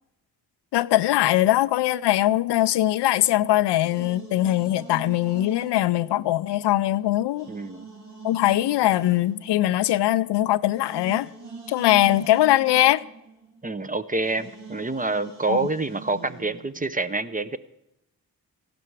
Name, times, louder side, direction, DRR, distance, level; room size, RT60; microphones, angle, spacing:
voice 1, 0.7-7.5 8.2-11.3 11.7-13.0 15.5-15.7, left 14 dB, 75° left, 0.5 m, -21 dB
sound 1, 3.8-6.8 7.3-13.9 14.2-16.9, right 4 dB, 70° right, 4.1 m, -43 dB
voice 2, 7.5-7.9 13.6-17.6, right 3 dB, 20° right, 0.7 m, -27 dB
15.5 x 12.0 x 4.7 m
cardioid pair, 60°, 41 cm